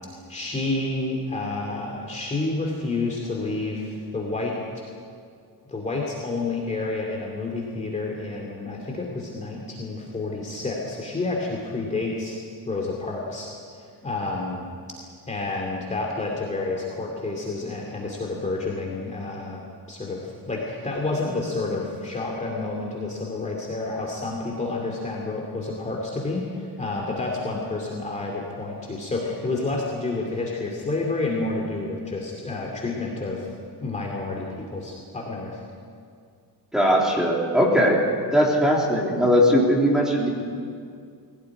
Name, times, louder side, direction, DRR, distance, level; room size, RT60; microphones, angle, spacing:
voice 1, 0.3-4.6 5.7-12.4 12.7-13.5 13.8-14.6 15.3-19.6 19.9-33.5 33.8-35.6, left 3 dB, 20° left, -2 dB, 2.6 m, -29 dB
voice 2, 36.7-38.0 38.3-40.3, equal, ahead, -2 dB, 3.4 m, -19 dB
21.5 x 17.5 x 9.7 m, 2.2 s
cardioid pair, 175°, 38 cm